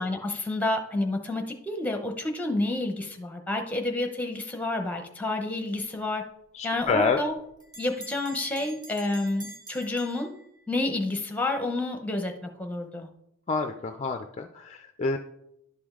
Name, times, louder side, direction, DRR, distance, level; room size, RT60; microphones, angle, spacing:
voice 1, 0.0-6.2 6.6-7.4 7.8-10.3 10.7-13.1, left 2 dB, 5° left, 4 dB, 0.8 m, -29 dB
voice 2, 6.5-7.2 13.5-15.2, left 4 dB, 30° left, 6 dB, 0.3 m, -28 dB
Bell, 6.8-10.9, right 1 dB, 20° right, 1.0 m, -47 dB
11.0 x 5.1 x 3.7 m, 0.80 s
head